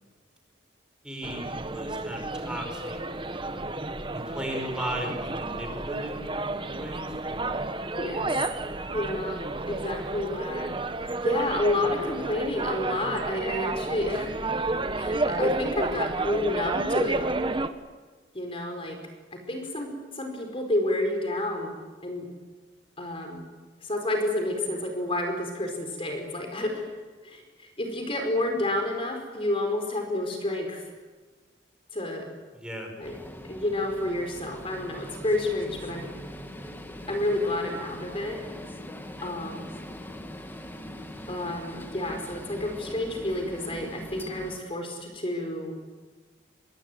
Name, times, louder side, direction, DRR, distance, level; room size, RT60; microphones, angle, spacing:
voice 1, 1.0-3.5 4.1-7.1 32.5-32.9, equal, 5° right, 3 dB, 5.2 m, -36 dB
sound 1, 1.2-17.7, right 2 dB, 25° right, 1.4 m, -31 dB
voice 2, 8.0-8.3 8.9-10.7 11.0-14.3 14.9-17.2 18.3-19.0 19.3-21.7 22.0-22.3 23.0-23.5 23.8-26.9 27.2-30.8 31.9-32.3 33.0-33.2 33.5-36.1 37.1-38.4 39.2-39.8 41.3-45.8, left 1 dB, 30° left, 4 dB, 4.8 m, -30 dB
sound 2, 33.0-44.6, equal, 10° left, 1.9 m, -41 dB
25.0 x 23.0 x 9.3 m, 1.4 s
head